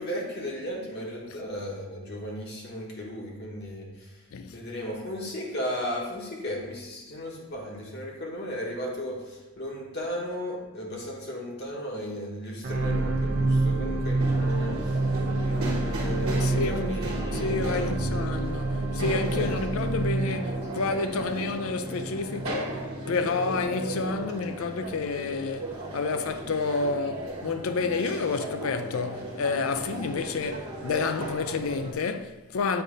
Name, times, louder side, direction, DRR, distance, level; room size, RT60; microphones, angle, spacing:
voice 1, 0.0-4.1 4.5-15.0 15.4-18.2 19.3-19.6, equal, 50° left, 1.1 m, -35 dB
sound 1, 12.6-25.0 25.6-25.7, right 2 dB, 50° right, 0.5 m, -29 dB
sound 2, 14.2-31.9, right 1 dB, 80° right, 1.2 m, -36 dB
voice 2, 16.4-17.0 17.3-22.8 23.1-32.8, left 4 dB, 70° left, 0.4 m, -29 dB
7.8 x 2.7 x 5.0 m
head